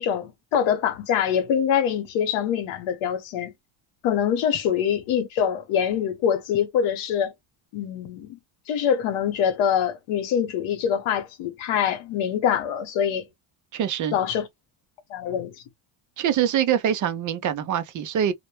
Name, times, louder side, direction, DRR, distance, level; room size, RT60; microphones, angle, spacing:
voice 1, 0.0-3.5 4.0-7.3 7.7-8.4 8.7-13.3 14.1-14.5 15.1-15.5, left 8 dB, 85° left, 0.9 m, -24 dB
voice 2, 13.7-14.1 16.2-18.3, right 9 dB, 40° right, 0.5 m, -24 dB
2.1 x 2.1 x 2.9 m
cardioid pair, 130°, 46 cm